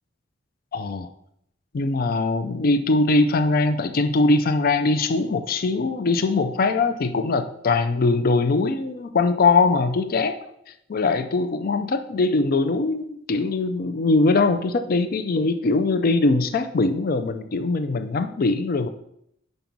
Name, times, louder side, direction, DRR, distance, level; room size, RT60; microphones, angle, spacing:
voice 1, 0.7-1.1 1.7-10.4 10.7-18.9, left 3 dB, 50° left, 9 dB, 0.4 m, -21 dB
5.3 x 5.1 x 5.9 m, 0.74 s
head